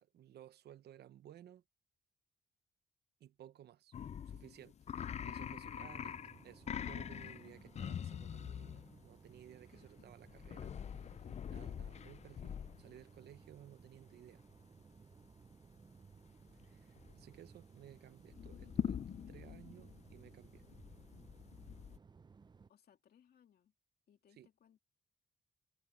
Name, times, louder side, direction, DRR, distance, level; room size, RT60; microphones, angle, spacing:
voice 1, 0.0-1.6 3.2-3.9 4.3-4.8 5.2-14.4 16.6-20.6 24.4-24.5, right 11 dB, 85° right, 0.9 m, -58 dB
sound 1, 3.9-9.1 10.2-13.0 16.5-16.6 17.0-17.4 18.3-22.0, left 8 dB, 45° left, 0.4 m, -44 dB
sound 2, 5.7-22.7, right 5 dB, 25° right, 0.5 m, -60 dB
voice 2, 9.7-10.1 22.7-23.7 24.1-24.8, left 9 dB, 70° left, 2.7 m, -68 dB
cardioid pair, 95°, 16 cm